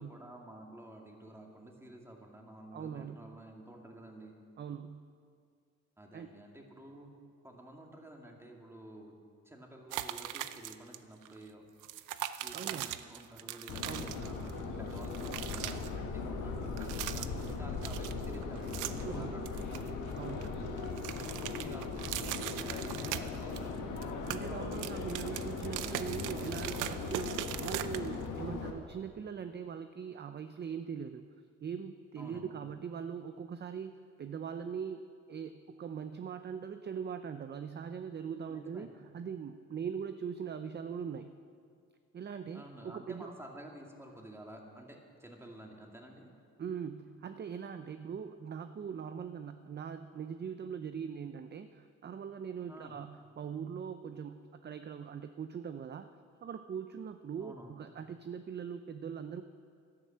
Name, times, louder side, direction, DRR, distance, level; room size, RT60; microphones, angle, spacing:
voice 1, 0.0-4.3 6.0-7.1 7.4-9.2 9.4-11.6 12.4-19.9 21.4-23.6 32.2-32.6 38.5-38.9 42.5-46.3 52.7-53.0 57.4-57.8, right 1 dB, 10° right, 1 dB, 2.3 m, -51 dB
voice 2, 2.7-3.4 4.6-5.0 6.1-6.3 12.5-12.9 13.8-14.1 19.0-19.3 20.1-20.6 24.3-31.3 31.6-33.9 34.2-41.3 42.1-43.3 46.6-56.1 56.4-59.4, right 7 dB, 35° right, 10 dB, 0.6 m, -41 dB
sound 1, 9.9-11.0 11.2-11.4 11.8-14.6 14.9-15.9 16.7-17.5 17.8-19.1 19.5-20.5 20.8-23.7 24.0-28.3, right 13 dB, 85° right, 0.6 m, -40 dB
Subway metro underground, 13.7-28.7, left 4 dB, 85° left, 1.7 m, -39 dB
11.5 x 11.0 x 7.4 m, 2.2 s
cardioid pair, 90°, 30 cm